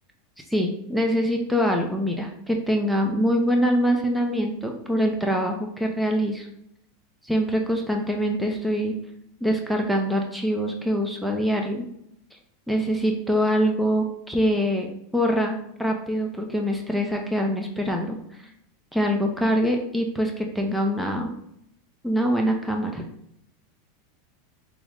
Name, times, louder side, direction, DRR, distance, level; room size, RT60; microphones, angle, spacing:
voice 1, 0.5-6.5 7.2-9.0 9.4-11.9 12.3-12.4 12.7-14.9 15.1-18.2 18.9-21.3 22.0-23.0, equal, ahead, 1 dB, 0.4 m, -24 dB
4.7 x 2.0 x 3.5 m, 0.75 s
supercardioid pair, 135°, 0 cm